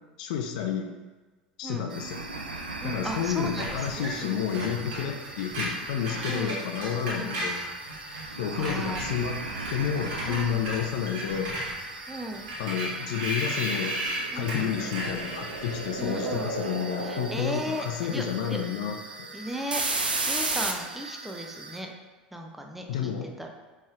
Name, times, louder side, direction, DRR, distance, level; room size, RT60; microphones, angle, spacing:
voice 1, 0.2-1.0 1.6-2.2 2.8-7.7 8.4-9.4 9.7-11.6 12.6-14.0 14.3-19.3 22.9-23.3, left 8 dB, 55° left, 5 dB, 0.4 m, -30 dB
sound 1, 1.9-21.8, right 3 dB, 80° right, 0.4 m, -36 dB
voice 2, 2.8-4.5 6.3-6.6 7.1-7.4 8.3-9.0 10.3-10.6 12.1-12.5 14.3-14.7 16.0-16.5 17.0-18.6 19.3-19.8 20.2-21.9 22.3-23.5, right 1 dB, 5° right, 2 dB, 0.5 m, -36 dB
Screech, 3.6-8.2 8.5-16.0, right 1 dB, 60° right, 1.3 m, -35 dB
5.2 x 3.1 x 2.4 m, 1.3 s
figure-of-eight pair, 75°, 5 cm